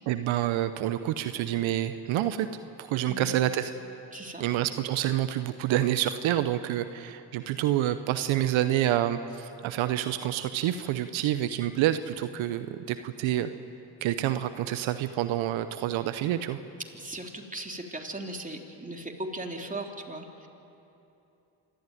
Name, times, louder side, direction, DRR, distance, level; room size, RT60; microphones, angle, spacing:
voice 1, 0.1-2.5 2.8-3.7 4.4-13.5 14.0-16.6, right 12 dB, 80° right, 11 dB, 0.9 m, -28 dB
voice 2, 4.1-4.4 16.9-20.5, right 1 dB, 15° right, 2 dB, 3.2 m, -38 dB
26.0 x 13.0 x 9.3 m, 2.9 s
supercardioid pair, 50°, 47 cm